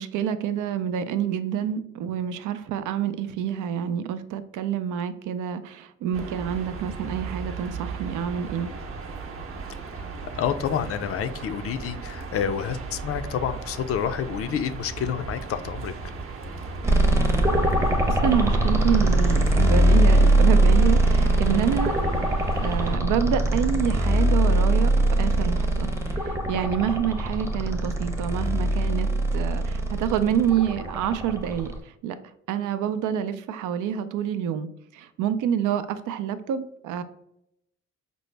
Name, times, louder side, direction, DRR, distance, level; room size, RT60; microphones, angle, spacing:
voice 1, 0.0-8.7 18.1-21.9 22.6-24.9 25.2-32.1 32.5-37.0, right 9 dB, 85° right, 11 dB, 0.5 m, -27 dB
sound 1, 6.1-23.0, right 4 dB, 45° right, 0.7 m, -36 dB
voice 2, 10.3-15.9, left 8 dB, 50° left, 11 dB, 0.4 m, -28 dB
sound 2, 16.8-31.7, right 1 dB, 10° right, 0.6 m, -21 dB
5.2 x 2.0 x 3.2 m, 0.76 s
cardioid pair, 90°, 30 cm